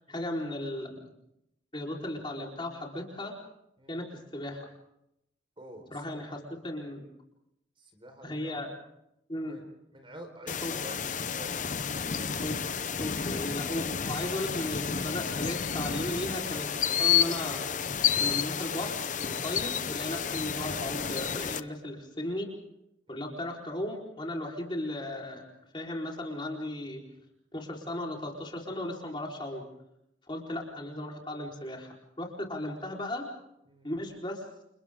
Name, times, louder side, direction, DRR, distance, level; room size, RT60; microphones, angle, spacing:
voice 1, 0.1-1.0 1.7-3.3 3.9-4.7 5.9-7.0 8.2-8.7 9.3-9.6 10.6-10.8 12.4-12.7 13.0-17.6 18.2-22.5 23.1-25.4 25.7-27.0 27.5-29.7 30.3-33.3 33.8-34.4, left 1 dB, 25° left, 0 dB, 4.4 m, -36 dB
voice 2, 5.6-6.4 7.8-8.6 9.4-9.6 9.9-11.8 23.1-23.3 33.7-33.9, right 1 dB, 25° right, 5 dB, 4.5 m, -49 dB
sound 1, 10.5-21.6, left 8 dB, 40° left, 0.8 m, -30 dB
29.5 x 29.5 x 3.8 m, 0.80 s
head